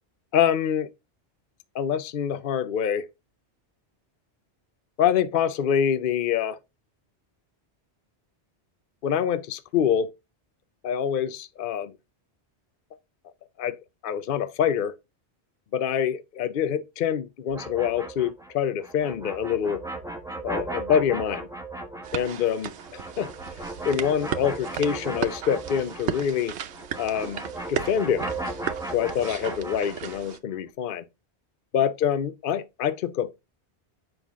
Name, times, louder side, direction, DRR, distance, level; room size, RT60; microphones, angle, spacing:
voice 1, 0.3-0.9 1.7-3.0 5.0-6.6 9.0-10.1 10.8-11.9 13.6-13.7 14.0-14.9 15.7-19.8 20.4-21.4 22.1-22.7 23.2-23.3 23.9-26.5 27.0-27.4 27.7-28.3 28.9-31.0 31.7-33.3, left 8 dB, 55° left, 0.7 m, -25 dB
sound 1, 17.5-26.4 26.7-30.3, right 2 dB, 5° right, 1.2 m, -36 dB
sound 2, 22.0-30.4, right 9 dB, 75° right, 1.0 m, -35 dB
7.4 x 5.4 x 3.6 m
omnidirectional pair, 1.1 m